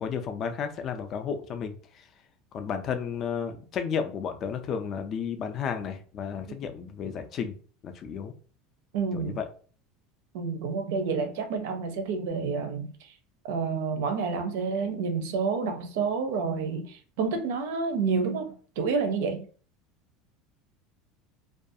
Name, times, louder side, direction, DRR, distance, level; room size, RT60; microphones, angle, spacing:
voice 1, 0.0-1.7 2.5-7.6 7.8-8.3 9.1-9.4, left 7 dB, 30° left, 0.3 m, -32 dB
voice 2, 8.9-9.4 10.3-13.1 13.4-19.4, right 5 dB, 75° right, 0.5 m, -29 dB
2.4 x 2.3 x 2.6 m
cardioid pair, 165°, 0 cm